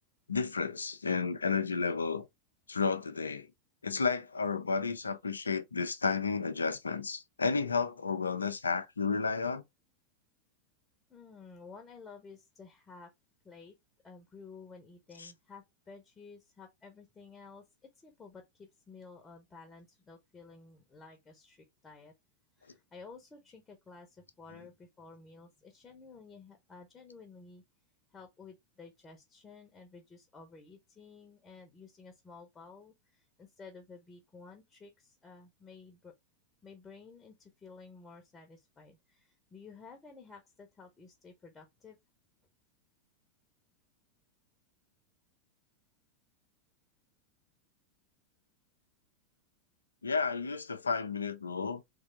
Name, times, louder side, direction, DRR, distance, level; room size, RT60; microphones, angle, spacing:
voice 1, 0.3-2.3 2.7-3.5 3.8-9.6 15.2-15.3 50.0-51.8, left 4 dB, 75° left, 0.5 m, -32 dB
voice 2, 11.1-13.1 13.4-13.7 14.0-17.6 17.9-22.1 22.5-27.6 28.1-36.1 36.6-42.0, left 4 dB, 15° left, 1.0 m, -53 dB
3.5 x 3.3 x 3.7 m
figure-of-eight pair, 90°, 0 cm